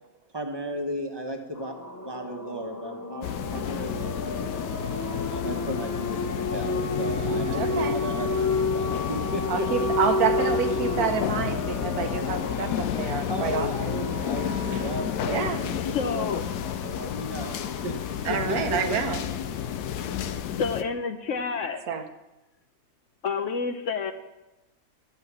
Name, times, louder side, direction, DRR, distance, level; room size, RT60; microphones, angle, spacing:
voice 1, 0.3-1.7 2.0-3.3 3.5-4.8 5.3-9.9 13.3-18.0 18.3-19.0, right 1 dB, 15° right, 3 dB, 1.2 m, -35 dB
sound 1, 1.5-21.0, left 2 dB, 15° left, 0.6 m, -33 dB
sound 2, 3.2-20.8, left 10 dB, 85° left, 1.2 m, -31 dB
voice 2, 7.5-8.0 9.5-13.9 14.7-14.8 15.2-15.6 18.2-19.2 21.9-22.0, right 6 dB, 75° right, 7 dB, 1.4 m, -28 dB
voice 3, 15.9-16.4 20.6-21.8 23.2-24.1, left 5 dB, 60° left, 7 dB, 1.0 m, -29 dB
12.5 x 5.7 x 8.4 m, 1.0 s
omnidirectional pair, 1.6 m